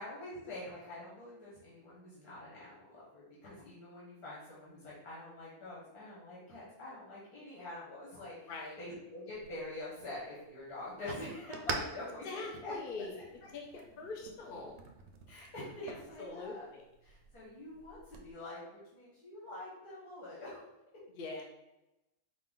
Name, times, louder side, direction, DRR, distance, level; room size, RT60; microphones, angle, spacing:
voice 1, 0.0-8.5 8.8-12.7 13.1-13.2 15.3-16.7 17.0-20.7, left 1 dB, 85° left, -7 dB, 1.7 m, -46 dB
voice 2, 8.5-8.8 12.2-13.1 13.5-13.7 14.0-14.8 15.8-16.8 21.2-21.4, left 3 dB, 50° left, 1 dB, 0.6 m, -43 dB
sound 1, 9.3-18.3, right 4 dB, 65° right, 0.7 m, -47 dB
5.1 x 2.4 x 3.7 m, 0.95 s
omnidirectional pair, 1.6 m